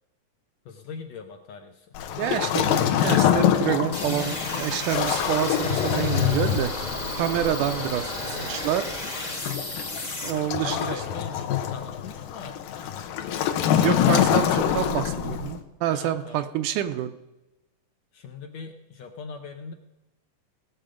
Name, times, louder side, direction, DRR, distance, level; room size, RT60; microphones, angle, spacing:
voice 1, 0.6-2.0 6.5-6.6 7.8-8.7 10.5-14.0 15.9-16.5 18.1-19.7, left 5 dB, 70° left, 5 dB, 1.7 m, -40 dB
Waves surf, 1.9-15.6, left 10 dB, 90° left, 2.5 m, -25 dB
voice 2, 2.2-6.7 7.2-8.1 8.5-8.8 10.2-11.0 13.8-17.1, right 11 dB, 80° right, 9 dB, 2.0 m, -27 dB
sound 1, 3.9-10.3, left 2 dB, 40° left, 0.6 m, -33 dB
18.0 x 7.8 x 5.1 m, 0.99 s
omnidirectional pair, 3.8 m